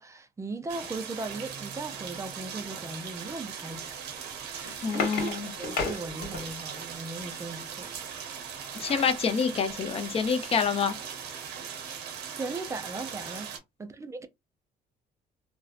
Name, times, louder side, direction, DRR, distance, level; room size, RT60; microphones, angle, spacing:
voice 1, 0.0-4.0 4.5-7.9 12.2-13.5 13.8-14.3, right 3 dB, 20° right, 0.4 m, -38 dB
sound 1, 0.7-13.6, right 7 dB, 85° right, 0.7 m, -39 dB
sound 2, 4.3-6.8 8.3-9.2 9.7-9.8 10.1-10.3, left 4 dB, 75° left, 1.2 m, -35 dB
voice 2, 4.8-5.5 8.8-11.0, left 6 dB, 35° left, 0.5 m, -27 dB
2.6 x 2.1 x 2.3 m
cardioid pair, 110°, 17 cm